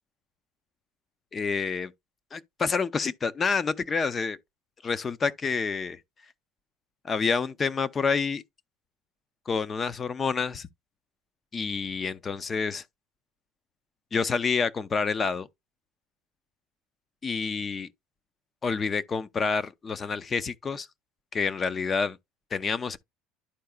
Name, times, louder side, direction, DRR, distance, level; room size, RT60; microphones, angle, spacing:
voice 1, 1.3-1.9 2.3-4.4 4.8-6.0 7.0-8.4 9.5-10.7 11.5-12.8 14.1-15.5 17.2-17.9 18.6-20.9 21.3-22.2 22.5-23.0, left 5 dB, 25° left, 0.5 m, -28 dB
11.5 x 4.6 x 2.2 m
cardioid pair, 135°, 0 cm